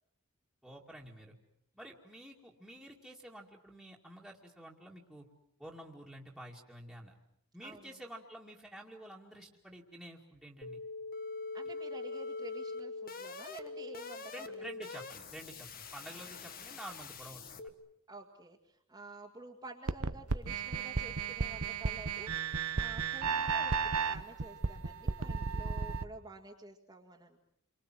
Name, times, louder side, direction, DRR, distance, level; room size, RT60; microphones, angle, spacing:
voice 1, 0.6-1.3 1.8-5.2 5.6-7.1 7.5-10.8 14.3-17.8, right 1 dB, ahead, -4 dB, 2.4 m, -50 dB
voice 2, 7.6-7.9 11.5-14.7 18.1-22.3 22.7-27.4, right 2 dB, 20° right, -1 dB, 2.0 m, -50 dB
sound 1, 10.6-17.7, left 3 dB, 40° left, 1.7 m, -43 dB
sound 2, 19.9-26.0, right 5 dB, 85° right, 1.1 m, -34 dB
29.5 x 24.0 x 7.7 m, 0.72 s
head